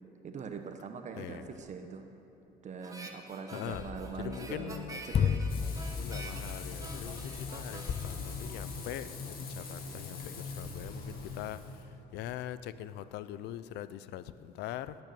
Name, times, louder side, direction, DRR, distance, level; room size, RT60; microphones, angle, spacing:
voice 1, 0.2-2.0 2.6-5.4, right 5 dB, 45° right, 6 dB, 1.0 m, -42 dB
voice 2, 1.2-1.5 3.5-3.8 4.2-5.0 5.9-11.6 12.1-15.0, left 12 dB, 80° left, 15 dB, 0.5 m, -42 dB
Harmonica, 2.8-9.3, right 2 dB, 20° right, 1.5 m, -49 dB
sound 1, 3.7-9.1, left 7 dB, 35° left, 0.4 m, -35 dB
Frying (food), 5.5-11.8, left 4 dB, 60° left, 2.1 m, -42 dB
18.0 x 9.1 x 6.9 m, 2.9 s
cardioid pair, 110°, 17 cm